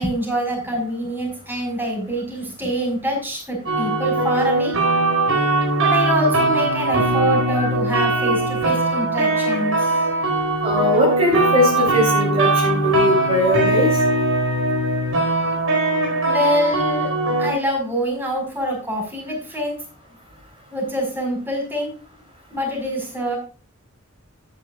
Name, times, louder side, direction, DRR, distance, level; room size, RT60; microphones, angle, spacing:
voice 1, 0.0-4.8 5.8-9.9 16.2-17.1 17.4-19.8 20.7-21.9 22.5-23.4, equal, 10° right, 0 dB, 5.0 m, -25 dB
sound 1, 3.7-17.5, right 2 dB, 80° right, 4.5 m, -20 dB
voice 2, 10.6-14.0, left 1 dB, 30° right, -3 dB, 3.5 m, -20 dB
13.0 x 9.9 x 2.4 m, 0.35 s
head